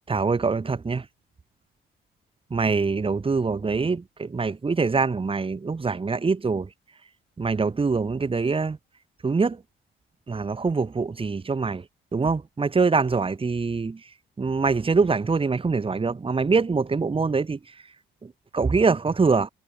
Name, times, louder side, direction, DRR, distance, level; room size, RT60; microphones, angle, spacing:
voice 1, 0.1-1.0 2.5-6.7 7.4-8.8 9.2-9.6 10.3-11.8 12.1-14.0 14.4-17.6 18.5-19.5, right 4 dB, 25° right, 2.3 m, -24 dB
cardioid pair, 90°, 20 cm